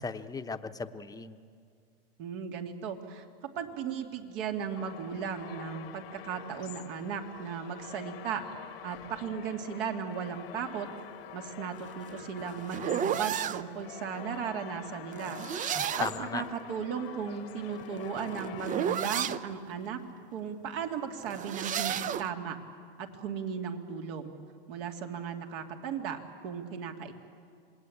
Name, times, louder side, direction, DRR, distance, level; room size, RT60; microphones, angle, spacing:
voice 1, 0.0-1.4 15.8-16.4, left 4 dB, 10° left, 9 dB, 1.0 m, -36 dB
voice 2, 2.2-3.2 3.6-8.5 8.8-10.9 11.3-15.4 15.7-20.0 20.3-22.6 23.0-24.3 24.7-27.1, right 7 dB, 65° right, 4 dB, 2.8 m, -36 dB
sound 1, 4.7-19.2, left 12 dB, 75° left, 1.3 m, -46 dB
sound 2, 11.9-13.6 15.1-16.3 17.7-19.4 21.2-22.3, right 9 dB, 25° right, 0.6 m, -32 dB
27.0 x 20.5 x 8.7 m, 2.3 s
hypercardioid pair, 115°, 30 cm